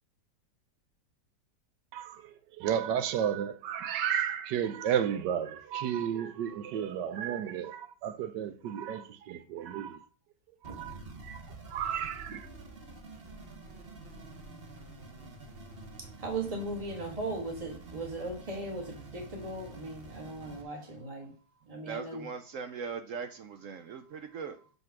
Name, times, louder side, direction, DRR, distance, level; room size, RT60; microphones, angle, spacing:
voice 1, 1.9-10.0 10.6-11.0 11.2-11.4 11.7-12.5, right 9 dB, 80° right, 1.3 m, -33 dB
sound 1, 10.6-20.6, right 2 dB, 40° right, 1.2 m, -48 dB
voice 2, 16.2-21.3 21.7-22.2, right 2 dB, 20° right, 2.0 m, -38 dB
voice 3, 21.2-24.7, right 6 dB, 65° right, 0.8 m, -41 dB
5.8 x 5.4 x 5.9 m
omnidirectional pair, 1.8 m